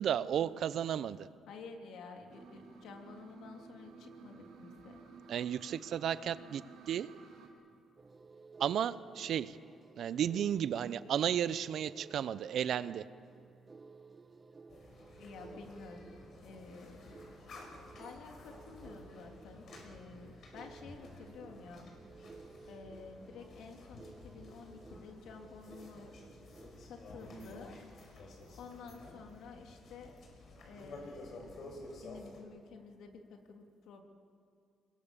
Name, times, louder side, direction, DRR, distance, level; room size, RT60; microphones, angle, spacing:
voice 1, 0.0-1.3 5.3-7.1 8.6-9.6 10.0-13.0, right 9 dB, 70° right, 15 dB, 0.7 m, -33 dB
voice 2, 1.5-5.0 15.2-17.4 18.0-22.0 22.3-22.4 22.7-26.1 26.8-27.8 28.6-30.2 30.6-31.5 32.0-34.0, left 4 dB, 80° left, 3 dB, 2.9 m, -51 dB
sound 1, 2.3-7.5, right 4 dB, 90° right, 3.9 m, -54 dB
sound 2, 8.0-27.4, right 4 dB, 30° right, 0.7 m, -56 dB
sound 3, 14.7-32.4, left 2 dB, 60° left, 6.1 m, -53 dB
26.0 x 22.0 x 6.9 m, 2.4 s
cardioid pair, 90°, 0 cm